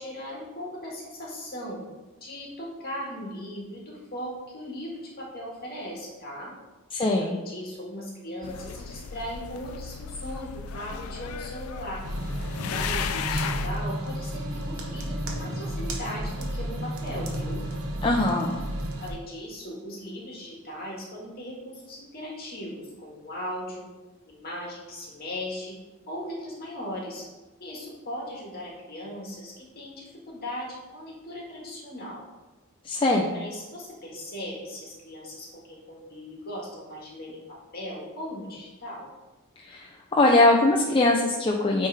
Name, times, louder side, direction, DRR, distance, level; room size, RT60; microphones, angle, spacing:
voice 1, 0.0-1.8 2.2-6.5 7.2-12.0 12.7-17.6 19.0-23.9 24.3-25.8 26.1-27.3 27.6-32.2 33.3-39.1, equal, 45° left, -3 dB, 1.8 m, -38 dB
voice 2, 6.9-7.4 18.0-18.5 32.8-33.3 39.7-41.9, left 2 dB, 25° left, -1 dB, 0.5 m, -21 dB
sound 1, 8.4-13.7, left 6 dB, 80° left, 0.4 m, -35 dB
sound 2, 12.0-19.1, right 1 dB, 80° right, 0.8 m, -32 dB
8.7 x 3.3 x 3.4 m, 1.2 s
head